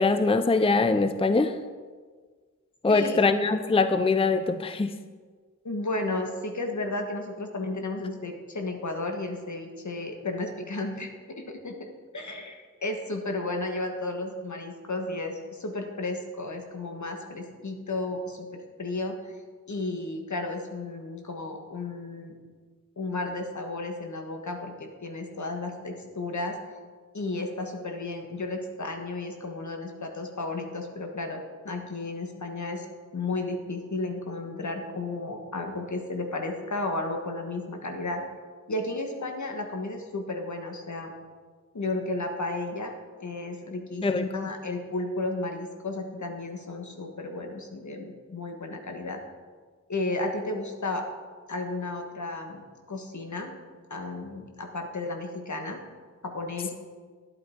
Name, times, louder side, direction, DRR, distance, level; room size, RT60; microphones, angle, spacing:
voice 1, 0.0-1.6 2.8-4.9 44.0-44.2, left 3 dB, 20° left, 10 dB, 0.5 m, -23 dB
voice 2, 2.9-3.2 5.6-11.9 12.1-19.4 19.7-22.3 23.0-26.6 27.1-32.9 33.1-38.2 38.7-41.1 41.7-42.9 43.2-49.2 49.9-51.0 51.5-52.6 52.9-53.5 53.9-55.8 56.2-56.7, left 2 dB, 70° left, 4 dB, 1.5 m, -33 dB
11.5 x 8.3 x 4.4 m, 1.5 s
wide cardioid pair, 60°, 30 cm